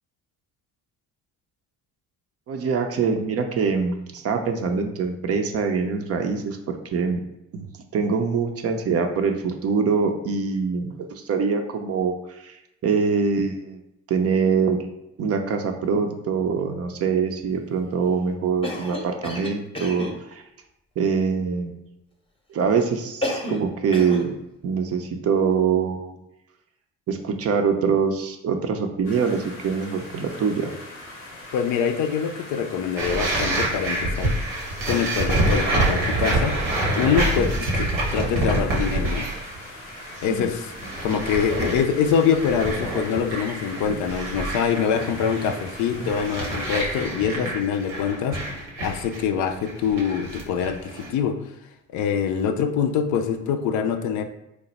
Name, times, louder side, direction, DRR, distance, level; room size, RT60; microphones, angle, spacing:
voice 1, 2.5-6.6 6.9-7.2 7.5-7.7 7.9-12.6 12.8-13.8 14.1-14.8 15.2-20.4 21.0-21.8 22.5-24.3 24.6-26.2 27.1-30.7 40.2-40.5 44.2-44.3, right 5 dB, 40° right, 5 dB, 0.5 m, -24 dB
Cough, 18.6-20.2 23.2-23.7 23.9-24.3, left 1 dB, 15° left, 0.8 m, -30 dB
sound 1, 29.0-47.1, left 2 dB, 85° left, 0.7 m, -41 dB
voice 2, 31.5-34.4 34.9-36.6 37.0-39.3 40.2-40.7 41.0-51.5 51.9-54.2, left 7 dB, 55° left, 7 dB, 0.5 m, -24 dB
sound 2, 33.0-39.6 39.9-40.3 40.6-51.1, right 1 dB, 80° right, 0.9 m, -27 dB
3.1 x 2.1 x 4.0 m, 0.87 s
hypercardioid pair, 45°, 36 cm